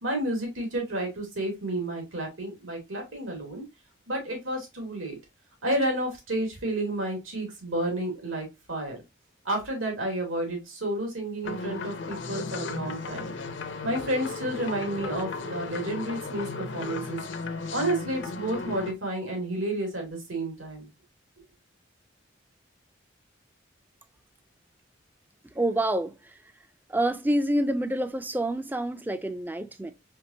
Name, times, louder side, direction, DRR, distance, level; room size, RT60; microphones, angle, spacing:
voice 1, 0.0-3.6 4.1-5.2 5.6-9.0 9.4-13.3 13.8-17.2 17.7-20.9, right 1 dB, 85° right, 2.4 m, -31 dB
sound 1, 11.4-18.9, left 4 dB, 65° left, 0.6 m, -35 dB
voice 2, 25.5-26.4 26.9-29.9, right 1 dB, 10° right, 0.3 m, -27 dB
4.5 x 3.6 x 2.7 m
head